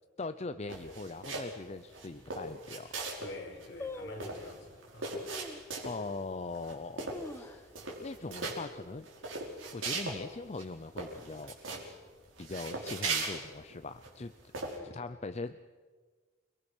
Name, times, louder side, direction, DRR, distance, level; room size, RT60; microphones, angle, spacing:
voice 1, 0.2-2.9 5.8-7.7 8.0-9.1 9.7-11.6 12.4-14.3 14.8-15.7, left 3 dB, 35° left, 10 dB, 0.6 m, -41 dB
sound 1, 0.7-1.6 1.9-3.3 3.6-3.7 3.9-6.1 6.5-6.7 7.0-7.4 7.7-8.6 9.0-10.2 10.5-10.6 11.0-11.9 12.4-14.1 14.5-14.8, right 3 dB, 90° right, 5.4 m, -38 dB
sound 2, 1.8-1.9 2.5-2.6 2.8-3.2 3.8-4.5 5.3-5.7 6.2-6.3 6.9-8.0 8.3-8.4 8.7-9.1 9.5-9.8 10.5-11.2 11.5-11.6, left 2 dB, 15° left, 1.1 m, -45 dB
voice 2, 3.2-5.2 14.6-15.0, left 1 dB, 60° left, 1 dB, 4.9 m, -47 dB
29.0 x 22.0 x 6.3 m, 1.5 s
head